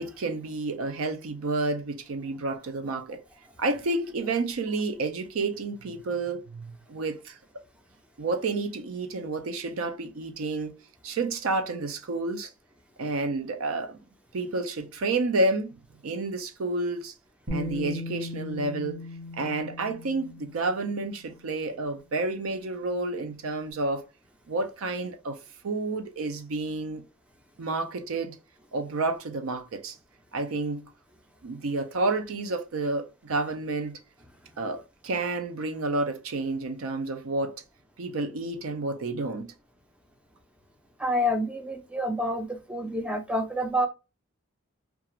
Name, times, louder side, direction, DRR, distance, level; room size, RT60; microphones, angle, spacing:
voice 1, 0.0-3.2 3.6-7.4 8.2-10.8 11.0-12.5 13.0-14.0 14.3-15.8 16.0-17.1 17.5-19.0 19.4-24.0 24.5-25.4 25.6-27.0 27.6-28.4 28.7-30.0 30.3-30.9 31.4-34.0 34.6-37.5 38.0-39.5, right 2 dB, 80° right, 0.5 m, -30 dB
Bass guitar, 17.5-21.4 22.5-22.6, left 1 dB, 60° right, 1.1 m, -37 dB
voice 2, 41.0-43.9, equal, 5° right, 0.4 m, -28 dB
2.4 x 2.4 x 2.9 m
head